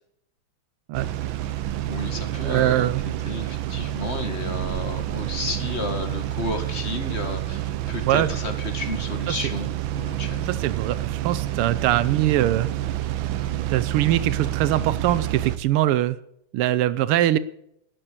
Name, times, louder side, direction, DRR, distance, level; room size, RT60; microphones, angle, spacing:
sound 1, 0.9-15.6, right 13 dB, 70° right, 1.5 m, -28 dB
voice 1, 1.9-10.6, left 2 dB, 30° left, 6 dB, 1.9 m, -32 dB
voice 2, 2.4-3.0 8.1-8.3 9.3-9.4 10.5-12.7 13.7-16.2 16.5-17.4, right 13 dB, 85° right, 17 dB, 1.6 m, -22 dB
12.0 x 10.0 x 6.8 m, 0.76 s
omnidirectional pair, 2.4 m